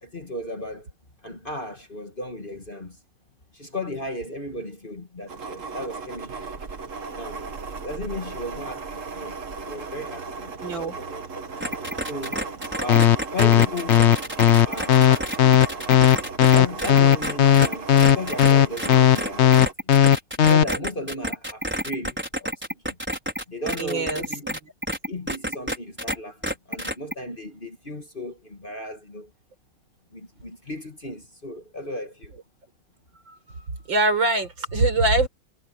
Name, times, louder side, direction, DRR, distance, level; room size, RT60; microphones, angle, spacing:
voice 1, 0.0-0.9 1.2-3.0 3.5-6.4 7.2-7.4 7.8-9.4 9.7-11.4 12.1-12.4 12.8-14.1 14.6-15.5 16.5-19.7 20.4-23.0 23.5-24.5 25.1-29.3 30.1-32.3, left 1 dB, 25° left, 1.9 m, -35 dB
sound 1, 5.3-19.7, right 4 dB, 40° right, 1.9 m, -36 dB
voice 2, 10.6-11.0 23.8-24.6 33.3-33.4 33.9-35.3, right 2 dB, 75° right, 5.3 m, -23 dB
sound 2, 11.6-26.2 26.4-27.1, equal, 5° right, 5.3 m, -29 dB
sound 3, 12.9-20.6, left 10 dB, 60° left, 0.7 m, -15 dB
omnidirectional pair, 2.1 m